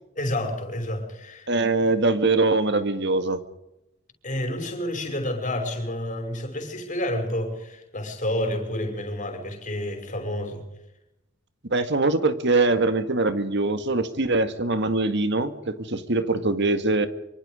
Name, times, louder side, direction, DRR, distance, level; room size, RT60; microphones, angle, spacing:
voice 1, 0.2-1.5 4.2-10.6, left 1 dB, 40° left, 5.7 m, -29 dB
voice 2, 1.5-3.4 11.7-17.1, right 2 dB, 60° right, 2.0 m, -23 dB
25.0 x 24.5 x 5.1 m
head